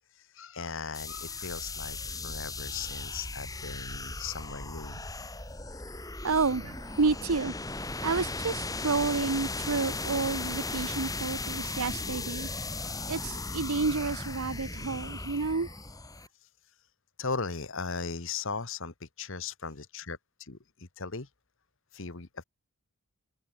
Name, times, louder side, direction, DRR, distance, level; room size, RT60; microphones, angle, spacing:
voice 1, 0.3-5.0 17.2-21.3 21.9-22.4, left 4 dB, 60° left, 1.5 m, -38 dB
sound 1, 0.9-16.3, left 3 dB, 15° left, 3.7 m, -37 dB
voice 2, 6.2-7.5 8.0-12.5 13.1-15.7, right 4 dB, 80° right, 0.9 m, -30 dB
head